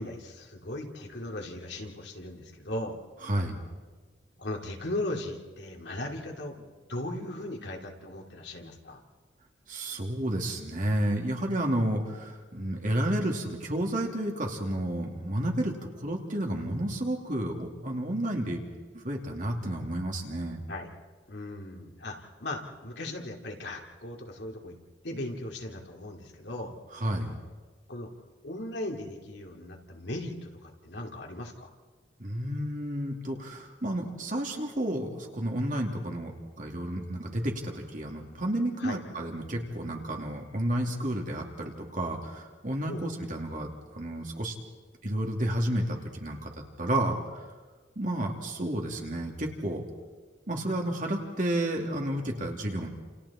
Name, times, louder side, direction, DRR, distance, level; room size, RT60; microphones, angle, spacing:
voice 1, 0.0-3.0 4.4-9.0 20.7-20.9 21.3-24.8 25.0-26.8 27.9-28.1 28.4-31.7 38.8-39.0 42.8-43.1 46.9-47.2, left 1 dB, 70° left, 1 dB, 3.0 m, -38 dB
voice 2, 3.3-3.6 9.7-15.7 16.0-18.6 18.9-20.6 27.0-27.3 32.2-36.3 36.6-44.5 45.0-46.5 46.8-47.1 48.0-49.8 50.5-52.9, right 1 dB, 45° right, 1 dB, 2.8 m, -31 dB
29.5 x 29.0 x 4.4 m, 1.4 s
head